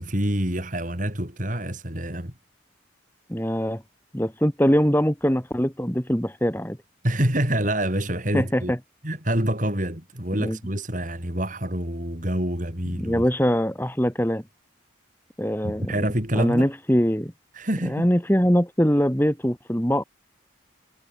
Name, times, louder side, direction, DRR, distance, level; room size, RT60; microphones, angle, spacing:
voice 1, 0.0-2.3 7.0-8.7 9.0-13.2 15.6-16.7 17.5-18.1, right 1 dB, 40° right, 4.8 m, -26 dB
voice 2, 3.3-3.8 4.1-6.8 8.3-8.8 10.4-10.6 13.0-14.4 15.4-15.9 16.4-17.3 17.8-20.0, equal, 10° left, 2.2 m, -22 dB
head